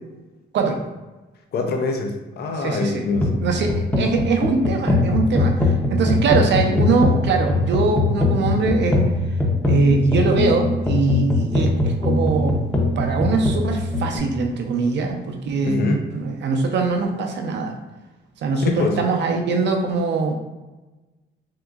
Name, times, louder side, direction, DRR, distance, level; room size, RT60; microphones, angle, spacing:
voice 1, 1.5-3.3 15.6-16.1 18.6-19.0, left 3 dB, 55° left, 4 dB, 0.5 m, -24 dB
voice 2, 2.6-3.0 3.4-9.0 9.6-12.6 13.0-17.7 18.4-20.3, right 4 dB, 60° right, 3 dB, 0.6 m, -22 dB
sound 1, 3.1-14.2, left 2 dB, 10° left, 0.6 m, -21 dB
3.7 x 2.8 x 2.4 m, 1.1 s
cardioid pair, 90°, 20 cm